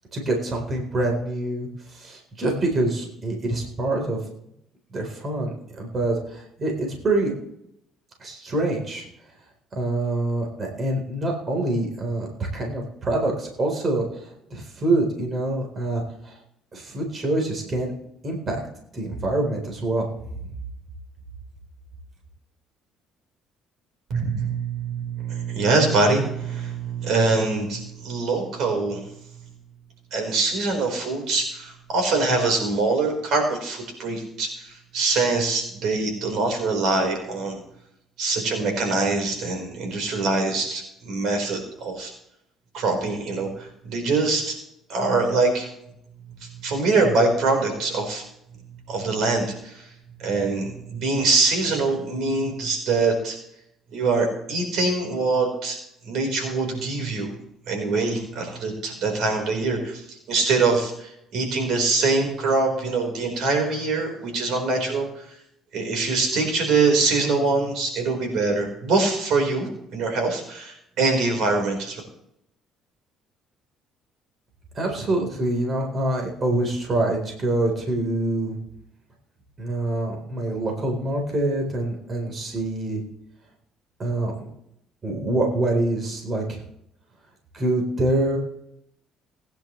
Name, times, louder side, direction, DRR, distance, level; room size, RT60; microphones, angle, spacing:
voice 1, 0.1-4.2 4.9-7.3 8.2-9.1 9.7-12.3 12.5-16.4 16.7-17.9 18.2-18.6 18.9-20.1 20.4-20.5 74.7-78.6 79.6-83.0 84.0-84.3 85.0-86.6 87.5-88.4, right 2 dB, 40° right, 1 dB, 4.1 m, -25 dB
voice 2, 24.1-29.0 30.1-37.6 38.2-42.1 42.7-44.6 44.9-45.7 46.3-48.2 48.7-49.8 50.2-53.4 53.9-55.8 56.0-57.3 57.7-60.0 60.3-65.1 65.7-72.0, right 3 dB, 70° right, 3 dB, 4.7 m, -24 dB
20.0 x 10.5 x 3.3 m, 0.77 s
supercardioid pair, 75°, 0 cm